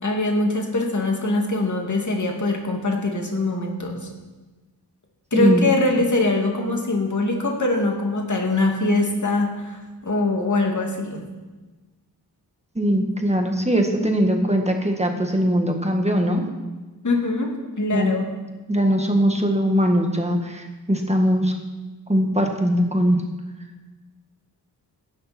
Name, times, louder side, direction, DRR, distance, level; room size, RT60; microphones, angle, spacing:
voice 1, 0.0-4.0 5.3-11.2 17.0-17.5 17.8-18.2, left 2 dB, 50° left, 1 dB, 2.7 m, -23 dB
voice 2, 5.3-5.7 12.8-16.5 17.9-18.3 18.7-21.5 22.1-23.2, equal, 15° right, 3 dB, 1.8 m, -21 dB
16.5 x 11.5 x 4.5 m, 1.2 s
wide cardioid pair, 100°, 39 cm